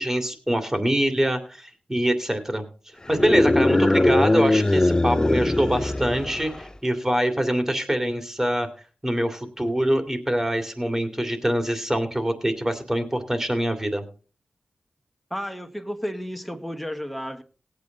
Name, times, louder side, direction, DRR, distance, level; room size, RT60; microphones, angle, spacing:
voice 1, 0.0-2.6 3.1-8.7 9.0-14.0, right 1 dB, 20° right, 6 dB, 2.5 m, -24 dB
sound 1, 3.1-6.7, left 2 dB, 25° left, 0.6 m, -21 dB
voice 2, 15.3-17.4, equal, ahead, 7 dB, 1.4 m, -32 dB
18.0 x 8.4 x 3.9 m, 0.37 s
cardioid pair, 50°, 3 cm